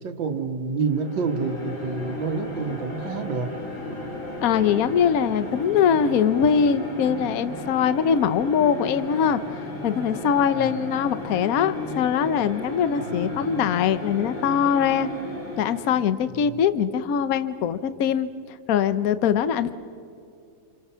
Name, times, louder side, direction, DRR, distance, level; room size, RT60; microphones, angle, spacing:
voice 1, 0.0-3.5 10.6-10.9 13.0-13.4 16.5-16.6, right 4 dB, 70° right, 3 dB, 2.2 m, -28 dB
sound 1, 0.8-16.1, left 2 dB, 80° left, 4.1 m, -35 dB
voice 2, 4.4-9.4 9.8-15.1 15.6-19.7, left 7 dB, 55° left, 13 dB, 1.1 m, -22 dB
28.0 x 28.0 x 5.7 m, 2.4 s
omnidirectional pair, 2.1 m